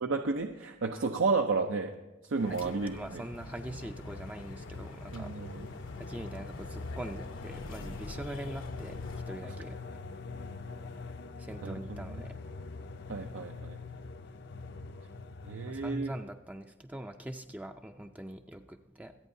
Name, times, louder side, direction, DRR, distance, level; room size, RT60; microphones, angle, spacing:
voice 1, 0.0-1.9 2.2-3.2 5.1-5.7 9.4-9.5 11.6-12.2 13.1-13.8 15.4-16.1, right 4 dB, 80° right, 5 dB, 0.6 m, -32 dB
sound 1, 2.4-9.2, left 2 dB, 90° left, 1.1 m, -48 dB
voice 2, 2.6-5.3 6.0-9.8 11.4-12.3 15.7-19.2, right 1 dB, 5° right, 5 dB, 0.4 m, -43 dB
sound 2, 3.3-16.4, left 3 dB, 60° left, 0.6 m, -43 dB
25.5 x 8.6 x 2.7 m, 1.1 s
head